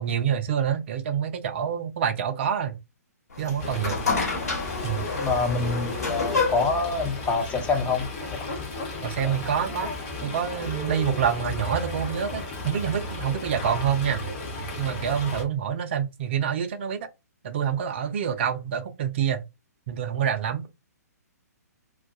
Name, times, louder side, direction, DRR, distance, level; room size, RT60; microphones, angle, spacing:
voice 1, 0.0-2.8 3.4-4.0 4.8-5.1 9.0-9.9 10.2-14.2 14.8-17.1 17.4-19.4 19.9-20.7, right 8 dB, 45° right, 0.4 m, -27 dB
sound 1, 3.3-8.6, left 4 dB, 65° left, 1.2 m, -30 dB
Fowl, 3.6-15.4, left 2 dB, 30° left, 0.9 m, -34 dB
voice 2, 5.2-8.1 8.3-8.4 9.2-9.4, left 4 dB, 15° left, 0.4 m, -26 dB
2.3 x 2.2 x 2.5 m
figure-of-eight pair, 130°, 9 cm